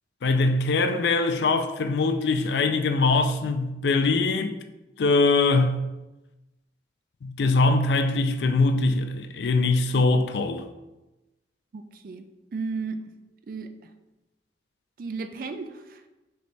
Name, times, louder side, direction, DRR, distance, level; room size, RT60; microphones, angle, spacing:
voice 1, 0.2-4.6 5.0-5.8 7.2-10.6, left 3 dB, 75° left, 0.4 m, -22 dB
voice 2, 11.7-13.0 13.5-13.9 15.0-16.1, right 4 dB, 50° right, 0.3 m, -34 dB
3.3 x 3.3 x 4.0 m
head